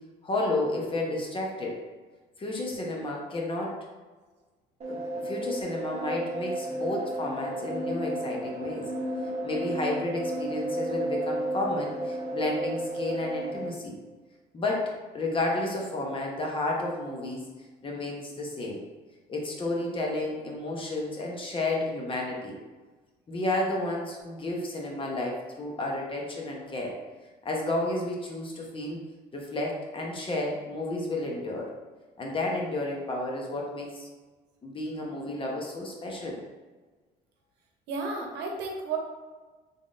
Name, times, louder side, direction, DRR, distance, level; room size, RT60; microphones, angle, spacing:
voice 1, 0.2-1.8 2.4-3.7 4.9-8.8 9.4-14.0 14.5-17.4 17.8-18.8 19.3-22.6 23.3-27.0 27.4-29.0 29.3-31.7 32.2-34.1 34.6-36.4, left 2 dB, 30° left, -1 dB, 0.9 m, -31 dB
sound 1, 4.8-13.7, right 1 dB, 40° right, 0.9 m, -33 dB
voice 2, 37.9-39.0, right 4 dB, 85° right, 1 dB, 0.8 m, -32 dB
3.7 x 3.6 x 2.5 m, 1.3 s
cardioid pair, 110°, 17 cm